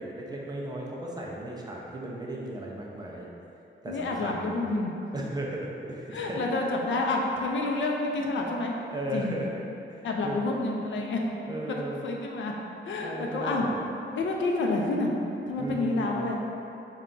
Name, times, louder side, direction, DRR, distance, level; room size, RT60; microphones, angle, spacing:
voice 1, 0.0-3.3 3.8-4.7 5.1-6.4 8.9-9.5 9.9-10.4 11.5-12.0 13.0-13.8 15.6-16.3, right 1 dB, 20° right, -3 dB, 0.3 m, -36 dB
voice 2, 3.9-4.9 6.1-8.7 9.1-9.3 10.0-11.2 11.7-12.5 12.8-13.7 14.1-15.1 15.5-16.4, left 2 dB, 75° left, 0 dB, 0.5 m, -29 dB
4.3 x 2.3 x 3.8 m, 2.8 s
wide cardioid pair, 180°, 20 cm